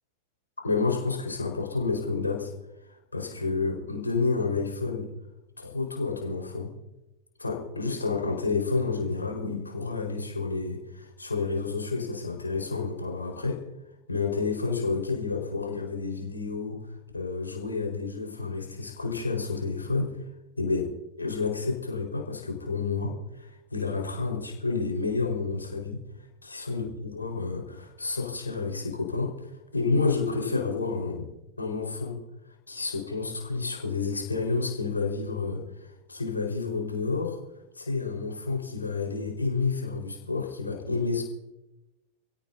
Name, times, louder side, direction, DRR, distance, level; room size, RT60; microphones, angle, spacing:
voice 1, 0.6-2.5 3.1-5.1 5.6-6.7 7.4-13.6 14.1-16.8 17.1-20.1 20.6-20.9 21.2-26.0 26.4-31.2 31.6-32.2 32.7-37.4 37.7-41.2, left 4 dB, 80° left, 0 dB, 4.7 m, -30 dB
29.0 x 17.0 x 2.8 m, 0.97 s
figure-of-eight pair, 90°, 0 cm